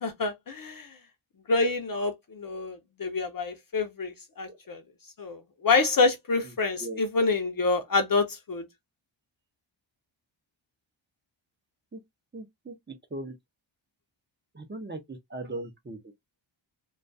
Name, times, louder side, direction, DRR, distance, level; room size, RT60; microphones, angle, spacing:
voice 1, 0.0-0.9 1.5-4.8 5.2-8.6, left 3 dB, 45° left, 0.5 m, -27 dB
voice 2, 12.3-12.7 13.1-13.3 14.5-16.0, right 2 dB, 25° right, 0.5 m, -38 dB
2.3 x 2.3 x 2.4 m
wide cardioid pair, 100°, 47 cm